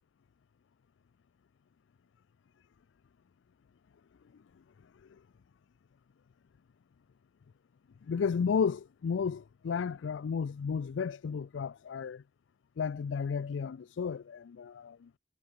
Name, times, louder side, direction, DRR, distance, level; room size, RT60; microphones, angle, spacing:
voice 1, 8.1-12.2 12.8-15.0, left 6 dB, 80° left, 0.4 m, -33 dB
head